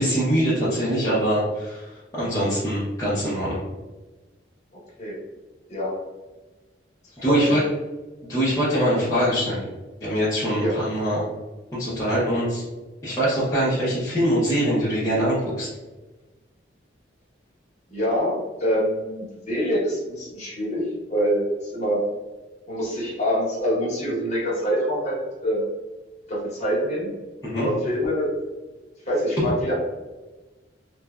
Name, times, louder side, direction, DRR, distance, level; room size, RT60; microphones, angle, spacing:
voice 1, 0.0-3.6 7.2-7.6 8.3-9.6 10.0-11.2 11.7-12.6 13.0-15.7 27.4-27.7, equal, 15° left, -11 dB, 0.6 m, -23 dB
voice 2, 17.9-22.0 22.7-25.2 25.4-25.6 26.3-27.1 27.6-28.3 29.1-29.7, equal, 40° left, -6 dB, 1.0 m, -25 dB
3.1 x 2.2 x 2.3 m, 1.2 s
head